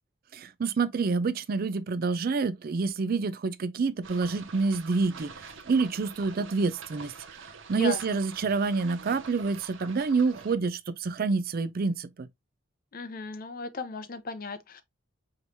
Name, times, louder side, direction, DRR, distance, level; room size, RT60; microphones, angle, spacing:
voice 1, 0.3-12.3, right 4 dB, 45° right, 0.4 m, -28 dB
sound 1, 4.0-10.5, right 5 dB, 70° right, 0.8 m, -46 dB
voice 2, 12.9-14.8, left 3 dB, 45° left, 0.6 m, -36 dB
4.9 x 3.1 x 2.6 m
head